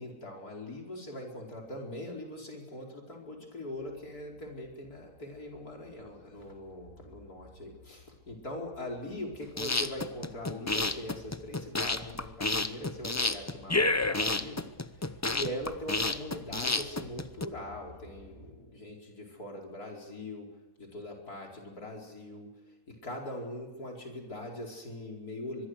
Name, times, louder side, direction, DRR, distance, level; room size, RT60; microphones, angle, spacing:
voice 1, 0.0-20.5 20.8-22.5 22.9-25.7, left 1 dB, 75° left, 0 dB, 5.3 m, -41 dB
sound 1, 3.7-18.5, left 1 dB, 45° left, 4.2 m, -57 dB
sound 2, 9.4-17.5, left 2 dB, 25° left, 0.3 m, -30 dB
24.5 x 22.5 x 6.6 m, 1.1 s
omnidirectional pair, 1.6 m